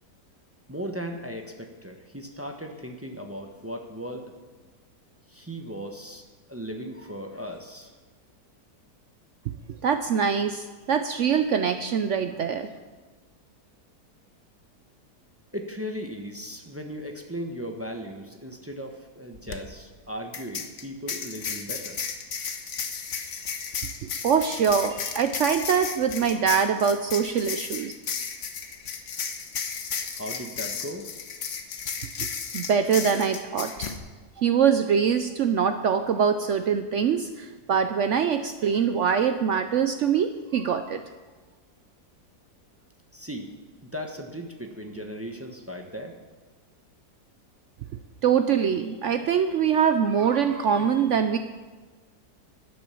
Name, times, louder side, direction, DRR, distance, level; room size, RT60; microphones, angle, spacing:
voice 1, 0.7-4.3 5.3-7.9 15.5-22.0 30.1-31.1 43.1-43.5 43.8-46.2, equal, 15° right, 3 dB, 0.6 m, -37 dB
voice 2, 9.8-12.7 24.2-27.9 32.2-32.3 32.5-33.9 34.4-41.0 48.2-51.4, right 7 dB, 70° right, 9 dB, 0.7 m, -23 dB
sound 1, 19.3-19.6 20.3-34.0, left 6 dB, 50° left, 1.1 m, -34 dB
11.0 x 8.9 x 7.0 m, 1.4 s
omnidirectional pair, 1.8 m